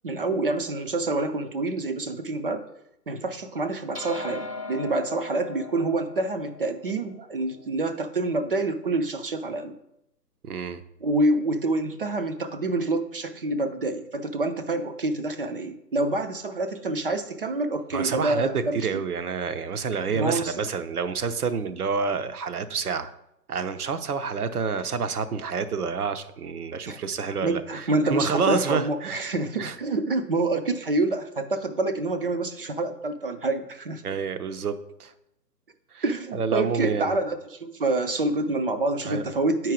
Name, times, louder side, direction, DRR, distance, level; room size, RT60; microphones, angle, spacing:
voice 1, 0.0-2.7 3.1-9.8 11.0-18.9 20.1-20.7 26.9-27.0 27.4-34.0 36.0-39.7, right 2 dB, 35° right, 9 dB, 0.5 m, -27 dB
sound 1, 3.9-8.6, left 3 dB, 85° right, 3.0 m, -40 dB
voice 2, 10.4-10.8 17.9-23.1 23.5-29.8 34.0-35.1 35.9-36.0 36.3-37.2 39.0-39.2, right 5 dB, 65° right, 11 dB, 0.8 m, -28 dB
8.9 x 4.7 x 5.0 m, 0.81 s
figure-of-eight pair, 145°, 49 cm